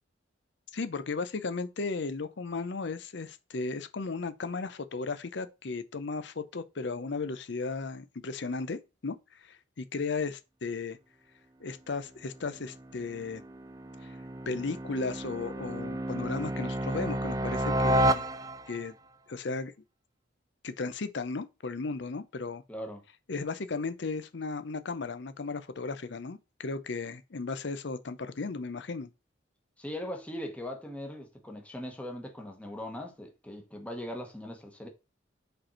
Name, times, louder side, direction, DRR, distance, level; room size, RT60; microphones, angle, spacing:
voice 1, 0.7-11.0 11.6-13.4 14.5-18.3 18.7-18.9 19.3-19.7 20.6-22.6 23.3-29.1, left 4 dB, 60° left, 0.6 m, -35 dB
sound 1, 12.5-18.9, right 1 dB, 20° right, 0.3 m, -31 dB
voice 2, 22.7-23.0 29.8-34.9, left 1 dB, 5° left, 1.2 m, -40 dB
5.2 x 4.3 x 4.4 m
head